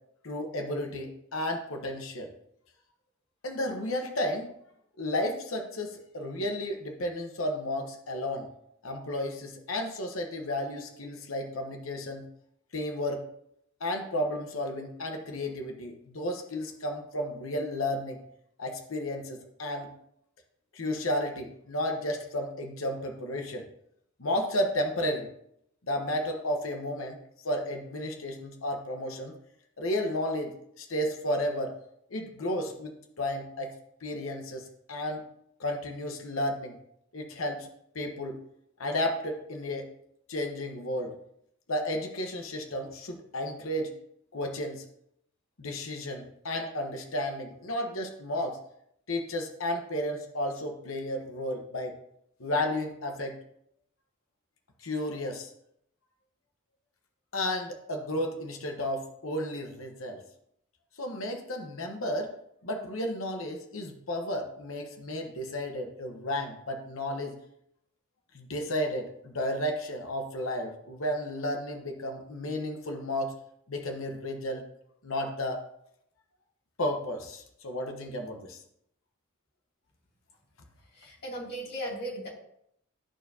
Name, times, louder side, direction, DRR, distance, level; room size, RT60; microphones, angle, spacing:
voice 1, 0.2-2.3 3.4-4.5 5.0-8.5 8.8-12.3 12.7-13.2 13.8-18.2 18.6-19.9 20.7-23.6 24.2-25.3 25.9-27.2 27.4-29.3 29.8-31.7 32.1-33.7 34.0-35.3 35.6-36.8 37.1-37.7 37.9-38.4 38.8-39.9 40.3-41.2 41.7-43.9 44.3-44.8 45.6-48.6 49.1-52.0 52.4-53.4 54.8-55.5 57.3-60.2 61.0-62.3 62.6-67.3 68.3-73.3 73.7-74.6 75.0-75.6 76.8-78.6, left 1 dB, 70° left, 3 dB, 1.1 m, -33 dB
voice 2, 81.0-82.3, right 1 dB, 50° left, -4 dB, 2.6 m, -37 dB
13.0 x 4.5 x 2.8 m, 0.73 s
head